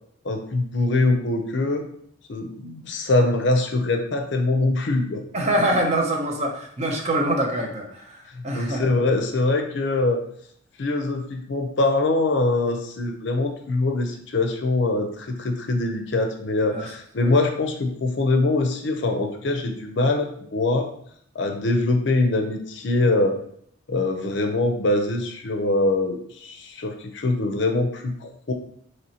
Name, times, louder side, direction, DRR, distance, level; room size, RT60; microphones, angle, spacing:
voice 1, 0.2-1.9 2.3-5.2 8.3-10.2 10.8-20.9 21.3-23.4 23.9-28.5, left 2 dB, 60° left, 5 dB, 0.5 m, -23 dB
voice 2, 5.3-8.9 16.7-16.9 17.2-17.3, right 1 dB, 35° right, 1 dB, 0.6 m, -25 dB
4.3 x 3.0 x 2.8 m, 0.64 s
head